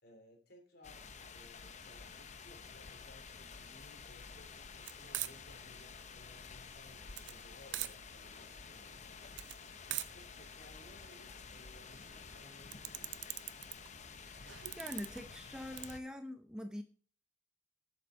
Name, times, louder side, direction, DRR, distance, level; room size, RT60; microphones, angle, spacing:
voice 1, 0.0-13.5, left 1 dB, 60° left, 3 dB, 3.2 m, -61 dB
sound 1, 0.8-16.0, left 5 dB, 40° left, 0.8 m, -51 dB
sound 2, 4.8-15.9, right 14 dB, 75° right, 0.6 m, -46 dB
voice 2, 14.7-16.8, left 1 dB, 5° right, 7 dB, 0.6 m, -44 dB
8.0 x 6.9 x 6.5 m, 0.43 s
head